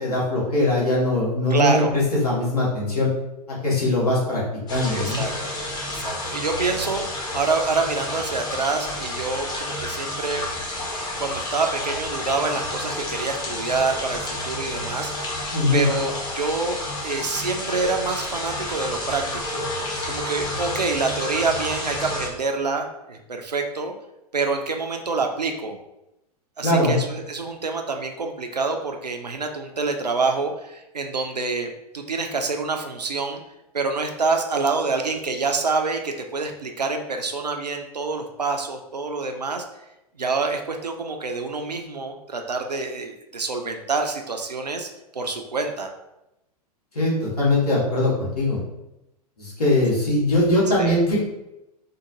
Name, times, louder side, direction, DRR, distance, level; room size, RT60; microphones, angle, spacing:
voice 1, 0.0-3.1 3.5-4.4 4.7-5.2 15.5-15.8 26.6-27.0 46.9-48.6 49.4-51.2, left 1 dB, 70° left, -6 dB, 1.5 m, -21 dB
voice 2, 1.5-1.9 4.9-5.6 5.9-10.4 11.2-16.8 17.0-19.6 20.1-23.9 24.3-25.8 26.6-33.4 33.7-39.6 40.2-45.9 50.8-50.9, right 4 dB, 90° right, 4 dB, 0.4 m, -27 dB
sound 1, 4.7-22.3, left 1 dB, 20° left, 0.7 m, -30 dB
3.5 x 2.2 x 2.9 m, 0.90 s
figure-of-eight pair, 95°, 20 cm